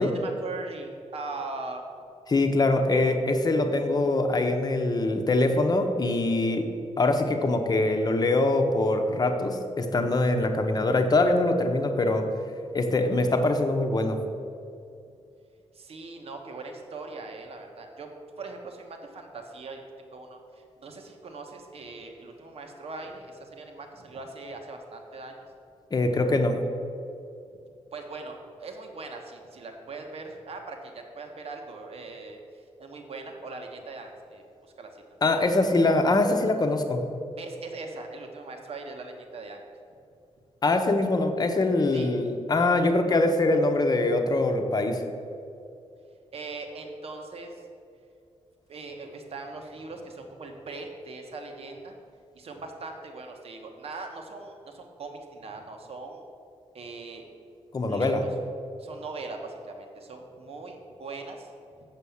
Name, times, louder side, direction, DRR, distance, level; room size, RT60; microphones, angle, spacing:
voice 1, 0.0-1.8 15.7-18.1 18.4-25.4 27.9-32.4 32.8-34.4 34.8-34.9 37.4-39.6 41.9-42.1 46.3-47.6 48.7-52.0 52.3-56.2 56.7-57.2 57.9-58.3 58.8-61.5, right 3 dB, 60° right, 3 dB, 1.2 m, -40 dB
voice 2, 2.3-6.6 7.0-12.2 12.7-14.2 25.9-26.6 35.2-37.0 40.6-45.0 57.7-58.2, left 2 dB, 35° left, 5 dB, 0.9 m, -23 dB
7.5 x 6.2 x 7.1 m, 2.5 s
wide cardioid pair, 120°, 12 cm